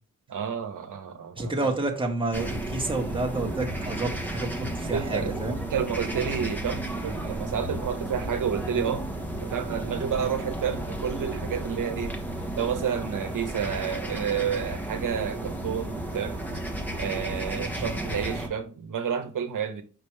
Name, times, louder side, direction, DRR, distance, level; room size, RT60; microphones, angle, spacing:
voice 1, 0.3-1.5 4.9-5.4 5.7-9.0 9.4-12.2 12.5-16.6 17.0-19.8, right 7 dB, 80° right, 1.0 m, -30 dB
voice 2, 1.3-5.6, right 2 dB, 15° right, 1.6 m, -29 dB
sound 1, 2.3-18.5, right 1 dB, 5° left, 1.4 m, -33 dB
6.0 x 5.2 x 3.3 m
wide cardioid pair, 95°, 32 cm